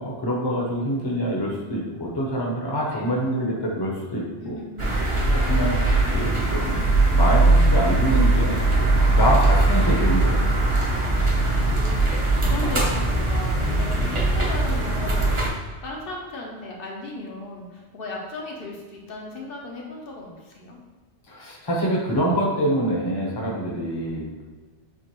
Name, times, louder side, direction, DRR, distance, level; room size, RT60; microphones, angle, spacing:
voice 1, 0.0-4.6 5.3-5.8 6.1-6.8 7.1-10.4 21.3-24.4, equal, 25° left, -3 dB, 0.8 m, -25 dB
voice 2, 4.4-5.0 11.4-15.3 15.8-20.8, left 2 dB, 55° left, -1 dB, 1.0 m, -36 dB
sound 1, 4.8-15.5, right 2 dB, 30° right, 0.7 m, -20 dB
7.2 x 2.5 x 3.0 m, 1.4 s
omnidirectional pair, 1.2 m